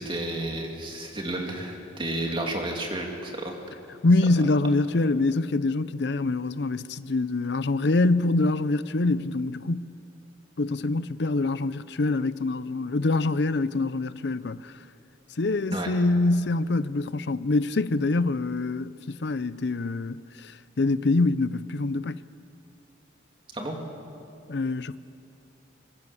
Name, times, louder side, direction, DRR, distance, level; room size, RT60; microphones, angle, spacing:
voice 1, 0.0-3.6 15.7-15.9 23.5-23.8, right 1 dB, 25° right, 2.6 m, -31 dB
voice 2, 4.0-9.9 10.6-14.7 15.4-22.2 24.5-25.0, left 2 dB, 60° left, 0.6 m, -25 dB
25.5 x 22.0 x 7.1 m
head